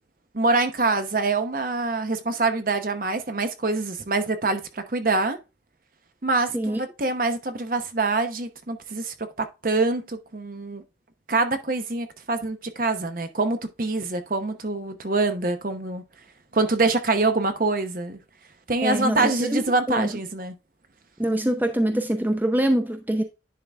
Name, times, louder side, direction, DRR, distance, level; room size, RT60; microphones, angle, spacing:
voice 1, 0.3-5.4 6.2-9.1 9.6-10.8 11.3-16.0 16.5-18.2 18.7-20.5, right 3 dB, 50° right, 0.9 m, -25 dB
voice 2, 18.8-19.6 19.9-20.1 21.2-23.2, right 1 dB, 10° right, 0.6 m, -24 dB
10.5 x 3.9 x 3.4 m
head